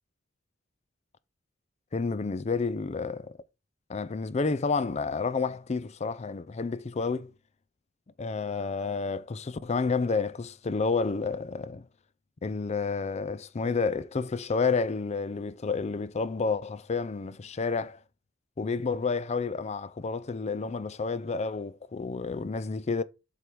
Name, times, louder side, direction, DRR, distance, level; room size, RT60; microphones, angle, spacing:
voice 1, 1.9-3.4 3.9-7.3 8.2-11.9 12.4-18.0 18.6-23.0, left 4 dB, 35° left, 0.4 m, -30 dB
8.0 x 3.7 x 4.5 m
head